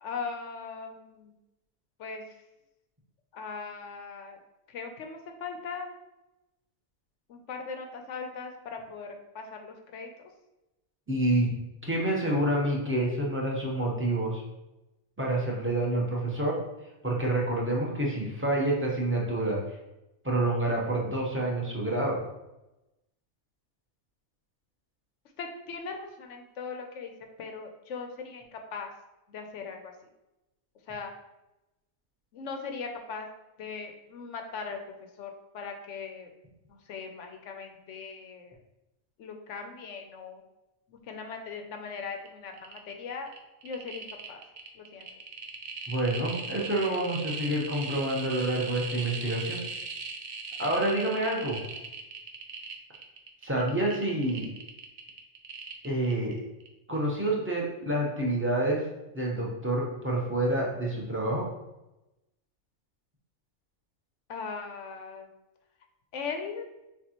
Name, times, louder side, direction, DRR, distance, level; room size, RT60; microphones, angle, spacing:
voice 1, 0.0-1.3 2.0-2.2 3.3-4.4 4.7-5.9 7.3-10.3 25.4-27.1 27.4-28.9 29.3-29.9 30.9-31.1 32.3-33.3 33.6-36.3 36.7-38.6 39.2-40.4 40.9-43.3 43.6-44.4 44.7-45.1 64.3-65.3 66.1-66.7, left 5 dB, 65° left, 4 dB, 0.8 m, -39 dB
voice 2, 11.1-11.5 11.9-14.4 15.2-16.6 17.0-19.6 20.2-22.2 45.9-49.6 50.6-51.6 53.4-54.5 55.8-56.4 56.9-58.8 59.1-61.4, right 1 dB, 10° right, -3 dB, 0.6 m, -28 dB
sound 1, 42.2-42.3 42.5-42.9 43.3-56.3 56.6-56.7, right 4 dB, 65° right, 0.4 m, -39 dB
6.7 x 2.4 x 2.9 m, 0.95 s
omnidirectional pair, 1.5 m